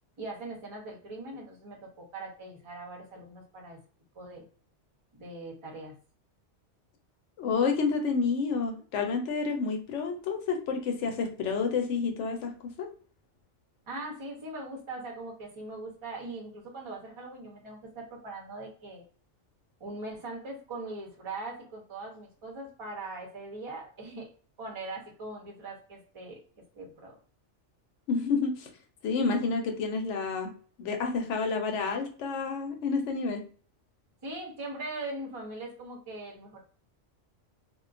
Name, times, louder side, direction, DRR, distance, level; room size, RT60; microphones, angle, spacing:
voice 1, 0.2-3.8 4.1-4.4 5.1-5.9 13.9-19.0 19.8-24.3 24.6-26.4 26.7-27.1 34.2-36.6, right 2 dB, 30° right, -1 dB, 0.7 m, -41 dB
voice 2, 7.4-12.9 28.1-28.7 29.0-30.5 30.8-33.4, left 4 dB, 80° left, 4 dB, 0.9 m, -29 dB
2.4 x 2.2 x 2.4 m, 0.42 s
omnidirectional pair, 1.2 m